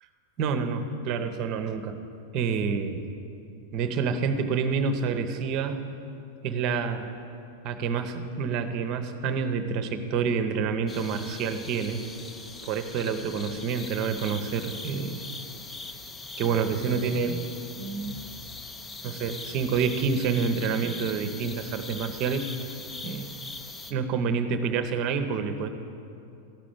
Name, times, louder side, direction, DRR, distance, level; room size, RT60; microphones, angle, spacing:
voice 1, 0.4-2.0 2.3-3.0 3.7-5.8 6.4-7.1 7.6-12.0 12.6-15.2 16.4-17.4 17.7-18.2 19.0-22.4 23.0-23.3 23.9-25.7, right 5 dB, 40° right, 8 dB, 0.8 m, -28 dB
sound 1, 10.9-23.9, left 3 dB, 15° left, 0.6 m, -41 dB
13.5 x 6.1 x 7.7 m, 2.7 s
figure-of-eight pair, 90°, 0 cm